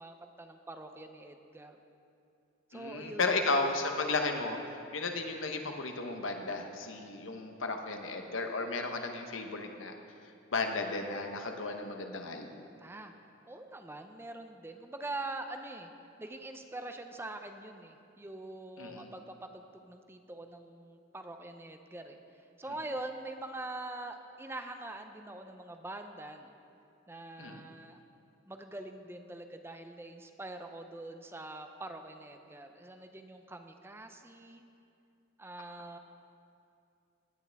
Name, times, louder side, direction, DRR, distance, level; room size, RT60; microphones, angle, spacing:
voice 1, 0.0-1.8 2.7-3.2 12.8-13.1 13.5-15.9 16.2-26.6 27.1-28.0 28.5-34.6 35.4-36.0, right 2 dB, 10° right, 6 dB, 0.5 m, -44 dB
voice 2, 2.7-9.9 10.5-12.6 18.8-19.1 27.4-27.6, left 3 dB, 80° left, 4 dB, 1.0 m, -34 dB
17.5 x 9.7 x 3.5 m, 2.6 s
head